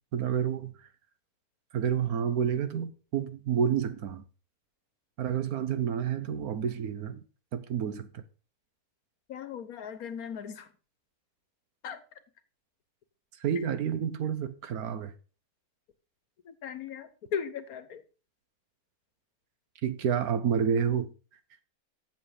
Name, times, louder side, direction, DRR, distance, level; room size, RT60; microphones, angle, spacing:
voice 1, 0.1-0.7 1.7-4.2 5.2-7.2 7.5-8.2 13.4-15.1 19.8-21.1, right 7 dB, 80° right, 1.4 m, -29 dB
voice 2, 9.3-10.7 11.8-12.0 16.4-18.0, left 7 dB, 80° left, 1.4 m, -37 dB
7.7 x 7.3 x 4.9 m
omnidirectional pair, 1.6 m